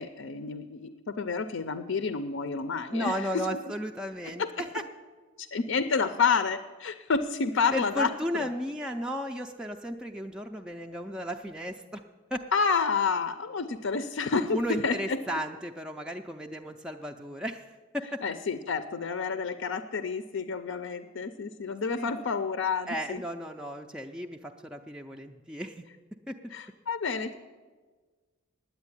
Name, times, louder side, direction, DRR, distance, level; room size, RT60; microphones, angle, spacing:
voice 1, 0.0-3.1 4.3-4.5 5.4-8.5 12.5-15.2 18.2-23.2 26.5-27.3, left 5 dB, 65° left, 10 dB, 0.5 m, -29 dB
voice 2, 2.9-4.8 7.7-12.0 12.3-12.4 14.5-18.2 21.9-22.1 22.9-25.8 26.3-26.4, equal, 5° right, 2 dB, 0.4 m, -34 dB
9.6 x 9.1 x 9.7 m, 1.4 s
head